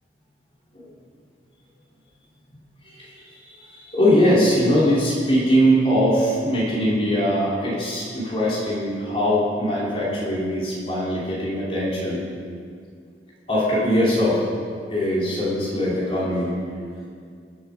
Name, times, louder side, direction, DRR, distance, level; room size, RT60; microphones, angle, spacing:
voice 1, 3.6-12.2 13.5-14.4 14.9-16.6, equal, 30° left, -7 dB, 3.3 m, -21 dB
22.0 x 7.5 x 4.9 m, 2.2 s
head